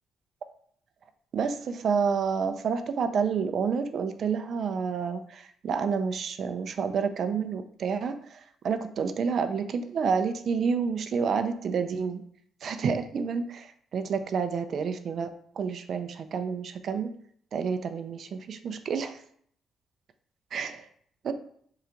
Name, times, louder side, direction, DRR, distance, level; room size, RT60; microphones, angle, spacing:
voice 1, 1.3-12.2 12.6-17.1 17.5-19.2 20.5-20.9 21.2-21.3, right 6 dB, 60° right, 9 dB, 0.4 m, -29 dB
3.8 x 2.3 x 4.4 m, 0.62 s
cardioid pair, 80°, 0 cm